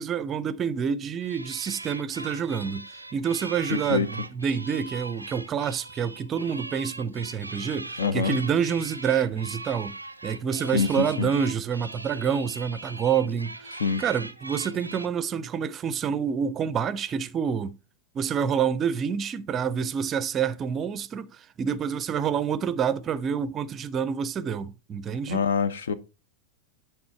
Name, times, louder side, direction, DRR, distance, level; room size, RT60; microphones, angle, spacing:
voice 1, 0.0-2.8 3.1-9.9 10.2-17.7 18.1-25.4, right 7 dB, 25° right, 0.5 m, -28 dB
sound 1, 1.2-15.1, right 2 dB, 85° right, 0.5 m, -40 dB
voice 2, 3.7-4.1 8.0-8.4 10.7-10.9 11.2-11.3 13.8-14.0 25.3-25.9, left 6 dB, 65° left, 0.6 m, -25 dB
8.7 x 3.6 x 4.4 m
figure-of-eight pair, 90°, 0 cm